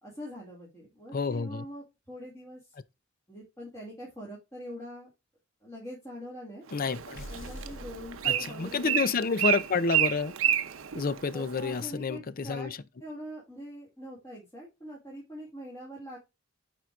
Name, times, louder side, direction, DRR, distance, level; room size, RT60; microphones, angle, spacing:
voice 1, 0.0-2.6 3.3-5.1 5.6-6.6 7.3-9.1 11.3-12.7 13.0-16.2, equal, 15° left, 2.3 m, -43 dB
voice 2, 1.1-1.6 6.7-7.2 8.2-10.3 11.0-12.8, left 4 dB, 45° left, 0.5 m, -29 dB
Bird, 6.7-11.8, right 11 dB, 80° right, 0.6 m, -31 dB
sound 1, 7.1-9.0, left 1 dB, 70° left, 1.3 m, -45 dB
9.5 x 4.5 x 2.4 m
head